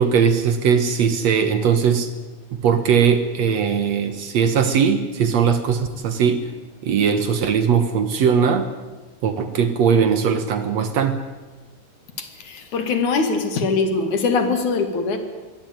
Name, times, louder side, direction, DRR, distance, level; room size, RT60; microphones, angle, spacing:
voice 1, 0.0-2.1 2.6-6.4 6.8-8.7 9.2-11.2, right 7 dB, 60° right, 10 dB, 2.3 m, -19 dB
voice 2, 12.2-15.2, left 4 dB, 65° left, 7 dB, 3.6 m, -22 dB
23.0 x 17.5 x 9.3 m, 1.2 s
omnidirectional pair, 3.8 m